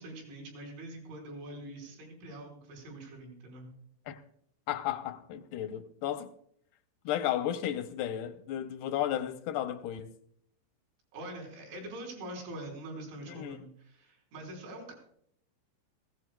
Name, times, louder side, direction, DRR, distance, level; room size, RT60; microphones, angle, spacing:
voice 1, 0.0-3.7 11.1-14.9, right 1 dB, 80° right, 6.6 m, -44 dB
voice 2, 4.7-6.3 7.1-10.1 13.3-13.6, left 11 dB, 80° left, 2.3 m, -33 dB
19.5 x 15.5 x 2.2 m
omnidirectional pair, 5.3 m